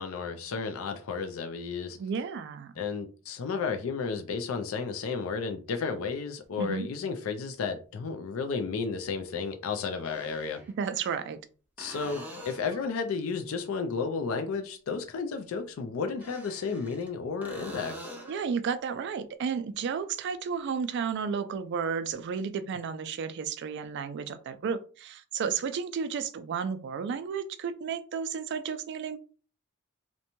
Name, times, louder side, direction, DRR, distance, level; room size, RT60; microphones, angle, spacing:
voice 1, 0.0-2.0 2.8-10.6 11.8-18.0, left 5 dB, 75° left, 0.4 m, -33 dB
voice 2, 1.9-2.8 6.6-6.9 10.8-11.4 18.3-29.2, right 6 dB, 55° right, 0.3 m, -32 dB
sound 1, 6.4-6.5 8.6-8.7 9.9-10.7 11.8-12.9 16.1-17.1 17.4-18.5 22.1-22.2, equal, 10° right, 0.6 m, -44 dB
2.6 x 2.1 x 2.9 m
head